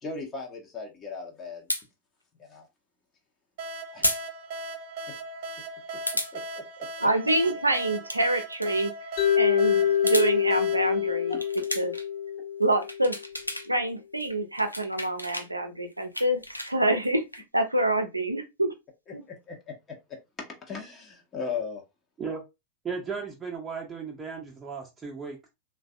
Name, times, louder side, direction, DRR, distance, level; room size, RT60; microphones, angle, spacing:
voice 1, 0.0-1.6 2.5-2.6 3.9-4.1 6.3-6.6 11.3-11.5 19.2-19.7 20.4-21.8, left 4 dB, 25° left, 0.7 m, -37 dB
sound 1, 1.7-1.8 4.0-4.2 4.6-4.7 6.1-6.3 7.9-8.2 8.5-8.7 9.9-10.3 11.3-12.1 12.6-13.7 14.0-15.5 15.9-17.4, left 1 dB, 90° left, 0.3 m, -32 dB
sound 2, 3.6-12.0, right 2 dB, 50° right, 0.9 m, -39 dB
voice 2, 7.0-8.9 9.4-11.4 11.8-11.9 12.6-13.2 13.7-17.2 17.5-18.7 19.1-19.2, right 1 dB, 85° right, 0.5 m, -26 dB
Mallet percussion, 9.2-13.3, left 9 dB, 45° left, 0.9 m, -26 dB
voice 3, 22.8-25.5, right 5 dB, 20° right, 0.6 m, -35 dB
3.3 x 2.2 x 2.3 m
figure-of-eight pair, 90°, 0 cm